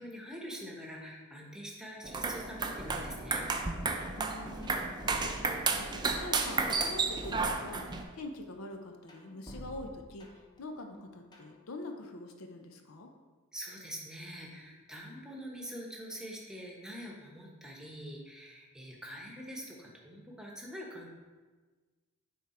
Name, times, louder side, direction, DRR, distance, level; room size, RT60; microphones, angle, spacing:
voice 1, 0.0-3.5 13.5-21.1, equal, 5° right, -2 dB, 1.1 m, -45 dB
sound 1, 2.0-8.0, right 4 dB, 20° right, 0.4 m, -32 dB
sound 2, 2.8-3.9 4.3-6.1 6.5-8.4 8.7-10.6 10.9-11.5, equal, 20° left, 0.9 m, -49 dB
voice 2, 4.1-13.1, left 2 dB, 70° left, 4 dB, 0.7 m, -45 dB
9.5 x 3.6 x 4.3 m, 1.4 s
head